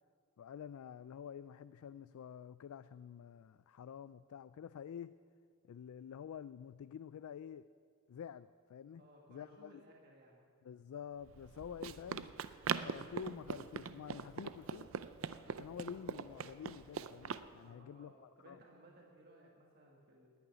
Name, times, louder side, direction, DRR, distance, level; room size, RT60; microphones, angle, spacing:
voice 1, 0.4-5.1 5.6-7.7 8.1-9.0 9.3-9.8 10.6-12.3 12.8-14.9 15.5-18.6, left 8 dB, 80° left, 14 dB, 0.3 m, -49 dB
voice 2, 9.0-10.4 17.6-20.3, right 1 dB, 45° right, -2 dB, 1.6 m, -61 dB
Run, 11.3-17.5, right 6 dB, 65° right, 0.5 m, -42 dB
9.9 x 9.5 x 9.9 m, 2.2 s
head